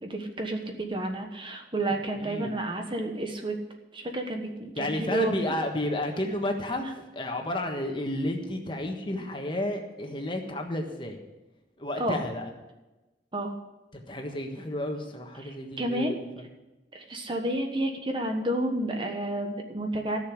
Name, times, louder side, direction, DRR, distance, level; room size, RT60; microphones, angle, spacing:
voice 1, 0.0-3.5 3.9-5.4 12.0-12.2 13.3-13.5 15.8-16.2 16.9-20.2, right 1 dB, 30° right, 4 dB, 1.2 m, -30 dB
voice 2, 2.1-2.5 4.8-11.2 11.8-12.5 13.9-16.1 16.4-16.5, left 1 dB, 25° left, 3 dB, 1.4 m, -31 dB
14.0 x 6.8 x 8.3 m, 1.1 s
head